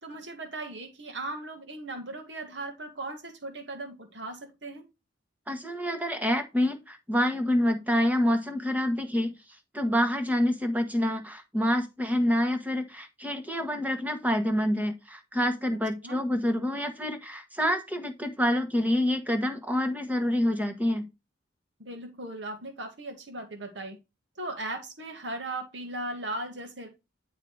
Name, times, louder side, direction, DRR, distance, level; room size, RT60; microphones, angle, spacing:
voice 1, 0.0-4.8 16.0-16.2 21.8-24.0 24.4-26.9, right 2 dB, 70° right, 1.8 m, -38 dB
voice 2, 5.5-9.3 9.7-21.0, left 1 dB, 10° right, 1.3 m, -27 dB
10.5 x 3.8 x 4.7 m
head